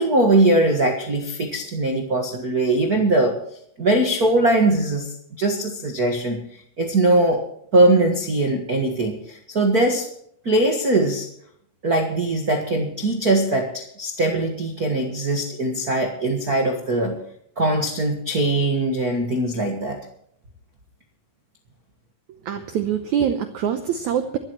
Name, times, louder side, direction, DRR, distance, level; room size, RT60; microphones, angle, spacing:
voice 1, 0.0-3.4 3.8-6.4 6.8-7.4 7.7-10.1 10.4-11.3 11.8-17.2 17.6-20.0, right 2 dB, 60° right, 3 dB, 0.9 m, -21 dB
voice 2, 22.4-24.4, right 8 dB, 80° right, 8 dB, 1.7 m, -24 dB
24.0 x 12.5 x 3.2 m, 0.69 s
omnidirectional pair, 4.6 m